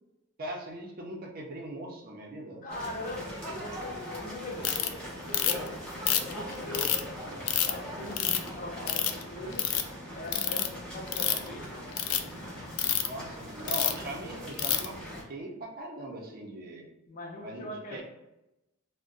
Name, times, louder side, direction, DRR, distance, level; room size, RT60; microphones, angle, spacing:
voice 1, 0.4-2.7 13.0-16.9 17.4-18.0, right 1 dB, 45° right, 0 dB, 0.6 m, -40 dB
voice 2, 2.6-11.7 17.1-18.0, left 1 dB, 40° left, -1 dB, 0.6 m, -42 dB
sound 1, 2.7-15.2, equal, 5° left, 0.8 m, -40 dB
Ratchet pawl, 4.6-4.9 5.3-5.7 6.1-7.0 7.5-7.7 8.2-8.5 8.9-9.2 9.5-9.8 10.3-10.7 11.1-11.5 11.9-12.2 12.8-13.1 13.7-14.0 14.6-14.9, left 10 dB, 85° left, 0.3 m, -27 dB
2.5 x 2.2 x 3.8 m, 0.93 s
head